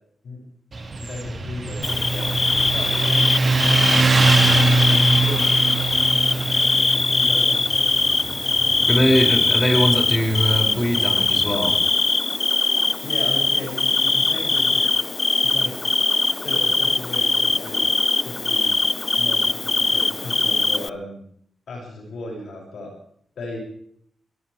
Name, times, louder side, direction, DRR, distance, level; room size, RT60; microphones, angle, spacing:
Motorcycle, 0.7-11.8, right 3 dB, 45° right, 2.3 m, -23 dB
voice 1, 1.0-2.3 2.6-3.3 3.6-4.2 4.5-4.8 5.2-5.5 6.1-8.0 13.0-14.8 15.4-15.7 16.4-18.0 18.2-18.7 19.2-21.2 21.7-22.9 23.4-23.6, left 2 dB, 75° left, -1 dB, 7.4 m, -36 dB
Bird / Cricket, 1.8-20.9, left 3 dB, 35° left, 0.6 m, -21 dB
voice 2, 8.9-11.8, equal, 15° left, 1 dB, 6.8 m, -21 dB
23.0 x 17.0 x 3.6 m, 0.65 s
cardioid pair, 60°, 0 cm